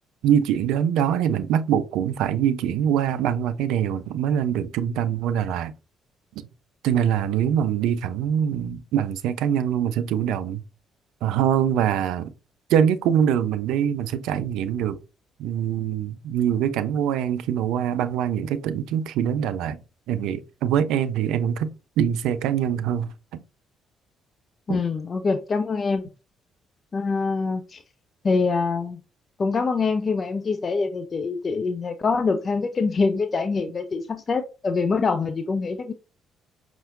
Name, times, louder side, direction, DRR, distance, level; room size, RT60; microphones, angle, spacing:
voice 1, 0.2-5.7 6.4-6.5 6.8-10.6 11.2-12.3 12.7-15.0 15.4-19.8 20.1-21.7 22.0-23.4 24.7-24.8, right 9 dB, 60° right, 0.3 m, -24 dB
voice 2, 24.7-26.0 26.9-27.8 28.2-29.0 29.4-35.9, left 4 dB, 35° left, 0.4 m, -24 dB
5.4 x 2.9 x 2.5 m
figure-of-eight pair, 45°, 0 cm